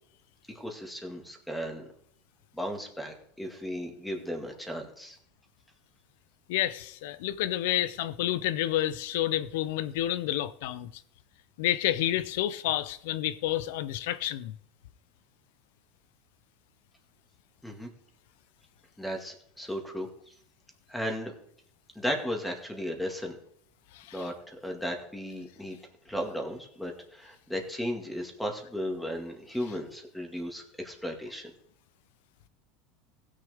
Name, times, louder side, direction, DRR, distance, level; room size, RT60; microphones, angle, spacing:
voice 1, 0.6-1.9 2.5-5.2 17.6-17.9 19.0-20.1 20.9-21.3 22.0-23.4 24.1-25.8 26.1-31.5, equal, 5° left, 2.2 m, -35 dB
voice 2, 6.5-11.0 11.6-14.5 23.9-24.3, left 13 dB, 75° left, 0.6 m, -29 dB
16.0 x 6.6 x 3.6 m
supercardioid pair, 105°, 0 cm